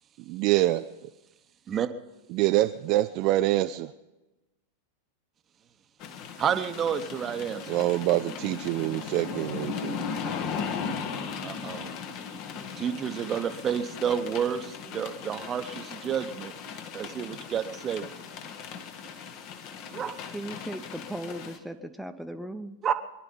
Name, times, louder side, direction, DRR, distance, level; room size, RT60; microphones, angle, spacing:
voice 1, 0.3-0.9 2.3-3.9 7.7-10.0, right 16 dB, 40° right, 9 dB, 0.5 m, -25 dB
sound 1, 6.0-21.6, left 6 dB, 40° left, 1.4 m, -37 dB
voice 2, 6.4-7.8 11.4-11.9 12.8-16.5 16.9-18.1 19.9-20.2 22.8-22.9, right 8 dB, 25° right, 10 dB, 1.0 m, -30 dB
voice 3, 20.3-22.8, right 1 dB, ahead, 7 dB, 0.9 m, -37 dB
23.5 x 11.0 x 5.4 m, 1.1 s
figure-of-eight pair, 90°, 0 cm